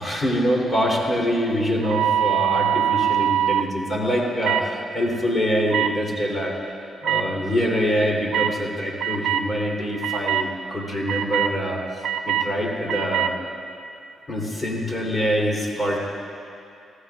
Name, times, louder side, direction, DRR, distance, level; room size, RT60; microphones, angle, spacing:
voice 1, 0.0-6.7 7.0-11.8 12.2-13.3 14.3-16.0, equal, 20° left, -3 dB, 3.1 m, -24 dB
sound 1, 1.8-3.7 4.4-4.7 5.7-5.9 7.0-7.2 8.3-8.5 9.0-9.5 10.0-10.5 11.1-11.5 12.0-12.5 12.9-13.3, right 10 dB, 75° right, 0.5 m, -22 dB
20.0 x 15.0 x 2.4 m, 2.7 s
cardioid pair, 95°, 0 cm